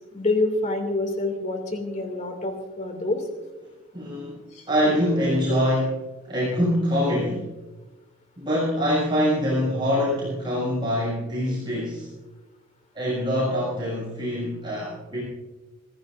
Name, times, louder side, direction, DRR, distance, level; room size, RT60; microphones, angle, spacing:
voice 1, 0.1-3.2 4.5-4.6, left 2 dB, 30° left, 5 dB, 2.5 m, -27 dB
voice 2, 3.9-4.4 4.7-6.0 6.2-7.5 8.4-12.1 12.9-15.2, equal, 20° right, -7 dB, 6.6 m, -24 dB
26.0 x 16.0 x 2.6 m, 1.1 s
head